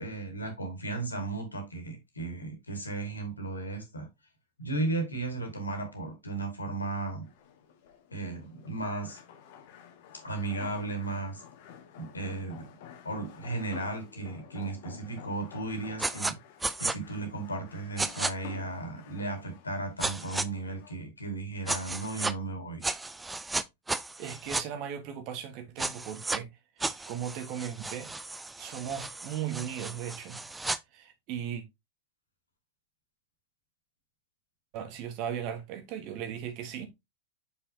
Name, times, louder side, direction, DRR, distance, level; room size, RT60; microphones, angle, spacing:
voice 1, 0.0-4.1 4.6-7.2 8.1-9.2 10.2-11.4 12.0-12.7 13.0-16.4 16.8-22.8, right 2 dB, 80° left, 2.1 m, -35 dB
sound 1, 7.2-21.0, left 8 dB, 50° left, 1.3 m, -50 dB
sound 2, 16.0-16.3 16.6-16.9 18.0-18.3 20.0-20.5 21.7-22.3 22.8-24.6 25.8-26.4 26.8-30.8, right 2 dB, 10° right, 0.4 m, -33 dB
voice 2, 24.2-26.5 26.8-28.1 28.6-30.4 30.9-31.6 34.7-36.9, right 9 dB, 40° right, 1.4 m, -37 dB
6.7 x 5.5 x 2.8 m
figure-of-eight pair, 90°, 0 cm